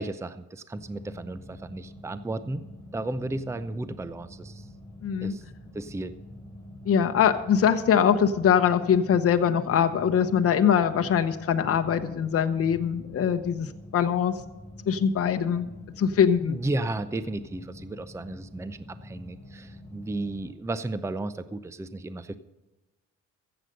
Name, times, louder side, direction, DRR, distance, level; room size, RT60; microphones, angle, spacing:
voice 1, 0.0-2.6 2.9-4.7 5.2-5.4 5.7-6.1 16.5-22.4, right 2 dB, 10° right, 13 dB, 0.6 m, -34 dB
sound 1, 0.7-20.5, left 1 dB, 10° left, 5.4 m, -46 dB
voice 2, 5.0-5.3 6.9-14.4 14.9-15.7 16.0-16.6, left 8 dB, 50° left, 7 dB, 0.9 m, -23 dB
14.5 x 7.9 x 6.5 m, 1.1 s
cardioid pair, 90°, 30 cm